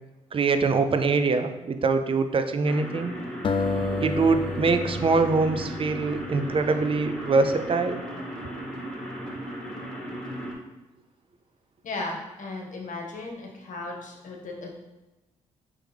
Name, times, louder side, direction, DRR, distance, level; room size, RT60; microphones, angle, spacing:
voice 1, 0.3-3.1 4.0-8.0, right 4 dB, 35° right, 8 dB, 0.5 m, -23 dB
sound 1, 2.6-10.5, equal, 5° left, 1.5 m, -36 dB
sound 2, 3.4-6.7, left 3 dB, 35° left, 0.4 m, -31 dB
voice 2, 11.8-14.8, left 2 dB, 55° left, 0 dB, 1.1 m, -36 dB
4.5 x 3.4 x 3.4 m, 1.1 s
hypercardioid pair, 45°, 15 cm